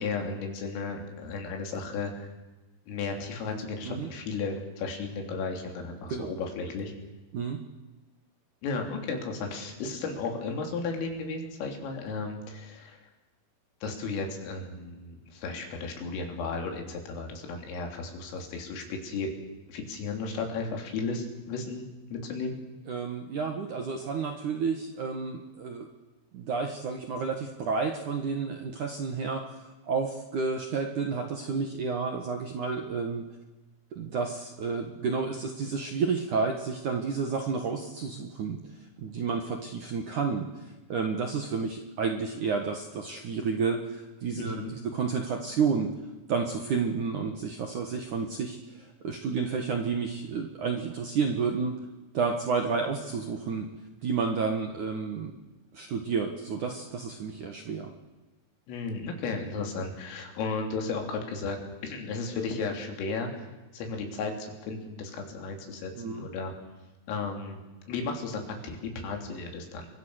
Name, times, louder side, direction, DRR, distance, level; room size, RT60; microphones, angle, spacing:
voice 1, 0.0-2.3 2.9-6.9 8.6-13.0 13.8-19.3 19.7-21.9 22.1-22.6 44.4-44.7 58.7-63.5 63.7-66.5 67.1-67.6 67.9-69.9, left 4 dB, 80° left, 3 dB, 6.1 m, -34 dB
voice 2, 22.9-25.9 26.3-33.2 33.9-38.6 39.0-45.9 46.3-51.7 52.1-53.7 54.0-55.3 55.7-57.9 66.0-66.3, right 5 dB, 60° right, 4 dB, 2.1 m, -31 dB
28.5 x 23.5 x 6.6 m, 1.1 s
omnidirectional pair, 5.8 m